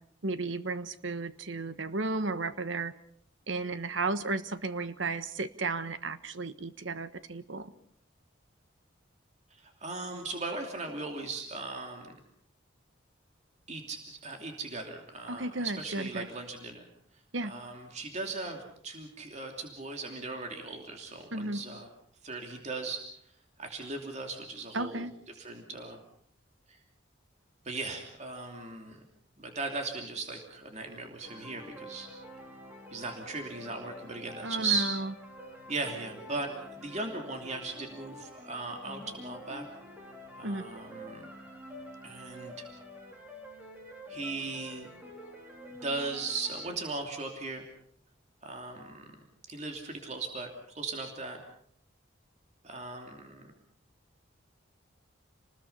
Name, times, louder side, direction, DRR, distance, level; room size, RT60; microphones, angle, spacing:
voice 1, 0.2-2.9 3.5-7.7 15.3-16.3 17.3-17.5 21.3-21.6 24.7-25.1 34.4-35.1 40.4-40.7, right 3 dB, 75° right, 12 dB, 1.3 m, -34 dB
voice 2, 9.6-12.2 13.7-16.8 17.4-21.9 22.2-23.0 23.6-25.1 25.4-26.0 26.7-26.8 27.6-29.0 29.4-32.1 32.9-34.9 35.7-39.7 40.3-41.3 42.0-42.7 44.1-44.9 45.8-47.6 48.4-49.0 49.5-51.4 52.6-53.5, right 3 dB, 35° right, 3 dB, 2.9 m, -38 dB
sound 1, 31.2-46.8, equal, 10° right, 3.7 m, -47 dB
29.0 x 20.0 x 5.6 m, 0.65 s
head